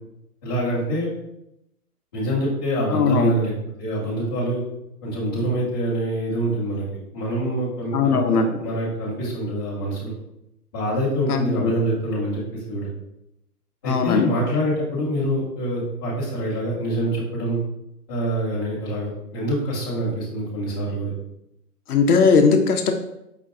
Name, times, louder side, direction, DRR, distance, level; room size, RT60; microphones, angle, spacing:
voice 1, 0.4-1.1 2.1-3.5 3.8-4.6 5.0-6.8 7.1-10.1 10.7-12.4 12.7-12.9 13.8-17.6 18.1-21.1, right 1 dB, 15° left, -9 dB, 0.7 m, -25 dB
voice 2, 2.9-3.3 7.9-8.5 11.3-11.7 13.8-14.3 21.9-22.9, left 5 dB, 70° left, 5 dB, 0.6 m, -19 dB
4.9 x 2.2 x 3.5 m, 0.83 s
hypercardioid pair, 165°, 47 cm